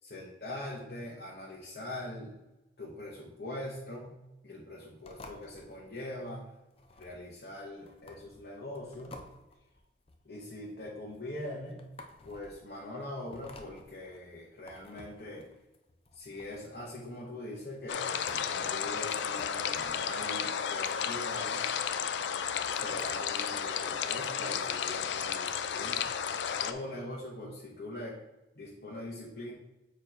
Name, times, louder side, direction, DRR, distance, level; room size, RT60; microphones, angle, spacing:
voice 1, 0.0-2.4 2.8-6.5 7.0-9.2 10.2-11.8 12.2-15.5 16.1-21.7 22.7-26.2 26.6-28.2 28.5-29.5, left 1 dB, 60° left, -5 dB, 1.0 m, -42 dB
sound 1, 5.0-23.5, left 2 dB, 30° left, 0.6 m, -55 dB
sound 2, 17.9-26.7, left 7 dB, 80° left, 0.4 m, -33 dB
7.0 x 3.2 x 4.4 m, 0.98 s
head